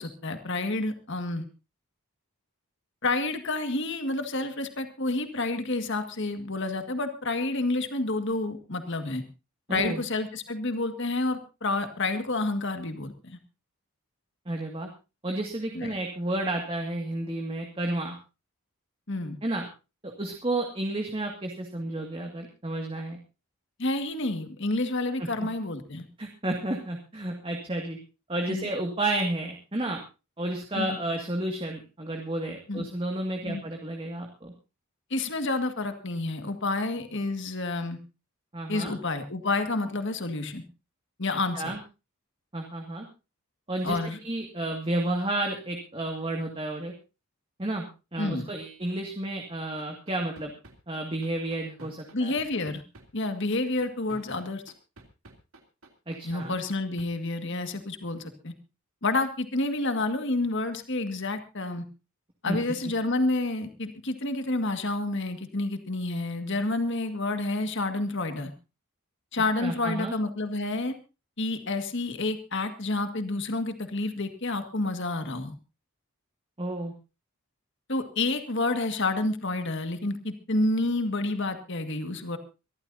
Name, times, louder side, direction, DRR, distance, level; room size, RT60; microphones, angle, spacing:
voice 1, 0.0-1.4 3.0-9.2 9.7-13.4 15.7-15.9 19.1-19.4 23.8-26.1 28.5-28.7 30.7-31.0 32.7-32.9 33.4-33.6 35.1-38.0 38.7-40.6 41.2-41.7 43.8-44.2 48.2-48.5 52.1-52.8 53.1-54.6 56.2-58.5 59.0-61.8 62.4-68.5 69.3-71.0 71.4-75.6 77.9-82.4, left 2 dB, 55° left, 8 dB, 1.9 m, -29 dB
voice 2, 9.7-10.0 14.5-14.9 15.2-18.2 19.4-19.7 20.0-23.2 25.2-25.3 26.2-28.0 28.3-30.0 30.4-34.5 38.5-38.9 41.6-41.8 42.5-43.1 43.7-44.0 44.2-46.9 47.6-47.9 48.1-50.5 50.9-52.3 56.1-56.5 62.5-62.6 69.6-70.1 76.6-76.9, right 1 dB, 25° right, 2 dB, 2.1 m, -31 dB
sound 1, 49.6-57.1, right 2 dB, 70° right, 3.1 m, -48 dB
24.5 x 13.5 x 2.7 m, 0.30 s
head